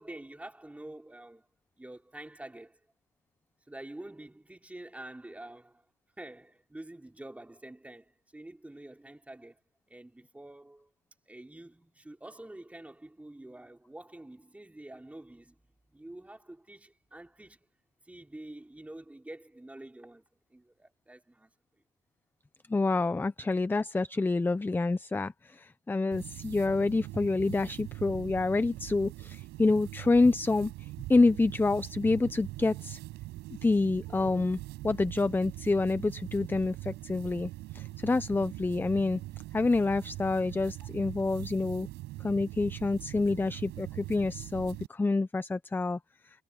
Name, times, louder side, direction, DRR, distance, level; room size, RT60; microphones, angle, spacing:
voice 1, 0.0-1.5 1.8-2.8 3.7-5.9 6.2-9.6 9.9-10.9 11.3-15.6 15.9-17.6 18.0-20.3 20.5-21.5, right 1 dB, 10° right, 3.5 m, -47 dB
voice 2, 22.7-33.0 33.6-39.2 39.5-41.9 42.2-46.0, left 3 dB, 10° left, 0.6 m, -28 dB
sound 1, 26.1-44.9, right 18 dB, 90° right, 6.0 m, -42 dB
cardioid pair, 110°, 17 cm